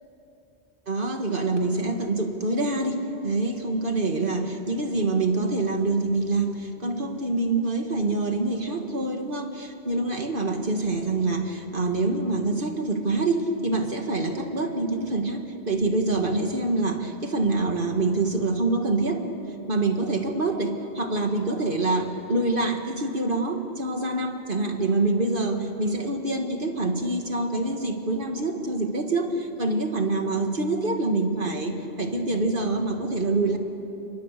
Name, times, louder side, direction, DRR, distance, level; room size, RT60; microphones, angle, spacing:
voice 1, 0.9-19.3 19.7-33.6, right 2 dB, 50° right, 4 dB, 2.1 m, -26 dB
29.0 x 24.0 x 6.8 m, 2.9 s
omnidirectional pair, 1.2 m